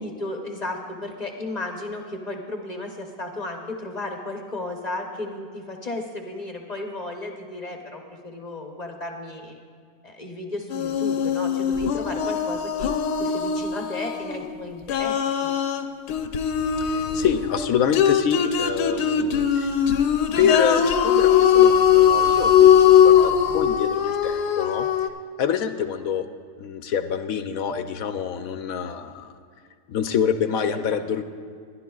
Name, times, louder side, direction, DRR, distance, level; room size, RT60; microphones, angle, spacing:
voice 1, 0.0-9.6 10.0-12.9 13.2-15.5 25.8-25.9 30.9-31.1, left 2 dB, 35° left, 2 dB, 0.7 m, -34 dB
sound 1, 10.7-14.4 14.9-25.1, left 8 dB, 90° left, 1.2 m, -20 dB
voice 2, 16.8-19.8 20.4-24.9 25.4-26.3 26.6-29.3 29.9-31.2, left 8 dB, 70° left, 9 dB, 0.9 m, -26 dB
21.5 x 11.0 x 2.3 m, 2.2 s
omnidirectional pair, 1.7 m